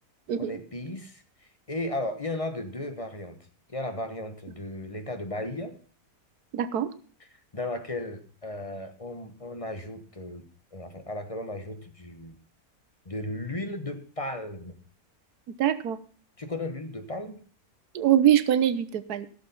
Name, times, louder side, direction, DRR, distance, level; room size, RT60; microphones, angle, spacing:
voice 1, 0.4-1.2 1.7-3.4 3.7-5.7 7.2-7.3 7.5-10.4 10.7-12.4 13.0-14.8 16.4-17.4, left 1 dB, 25° left, 8 dB, 1.2 m, -35 dB
voice 2, 6.5-6.9 15.6-16.0 17.9-19.3, right 10 dB, 85° right, 14 dB, 1.4 m, -23 dB
15.5 x 7.0 x 5.5 m, 0.44 s
omnidirectional pair, 1.6 m